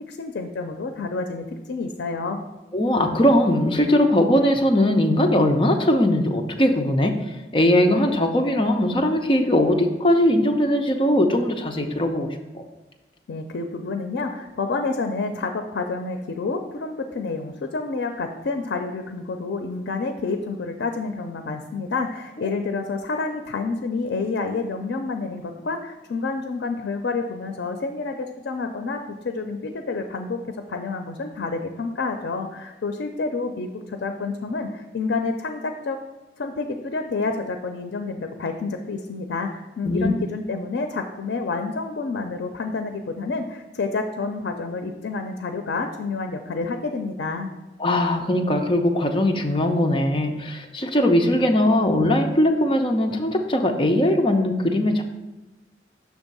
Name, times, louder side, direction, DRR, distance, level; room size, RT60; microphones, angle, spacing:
voice 1, 0.1-2.4 13.3-30.4 30.7-36.0 36.4-47.5, left 3 dB, 85° left, 6 dB, 0.4 m, -29 dB
voice 2, 2.7-12.3 12.5-12.6 39.8-40.1 47.8-55.0, left 1 dB, 30° left, 4 dB, 0.5 m, -20 dB
6.4 x 3.5 x 5.3 m, 1.1 s
head